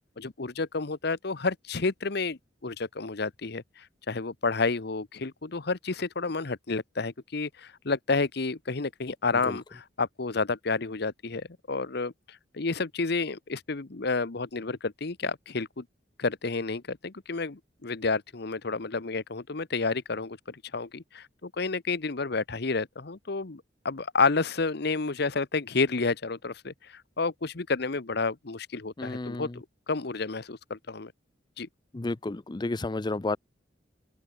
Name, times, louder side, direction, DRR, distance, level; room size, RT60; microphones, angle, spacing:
voice 1, 0.2-15.8 16.2-31.1 31.6-31.7, left 4 dB, 60° left, 1.0 m, -30 dB
voice 2, 29.0-29.6 31.9-33.4, left 2 dB, 25° left, 0.5 m, -31 dB
open air
head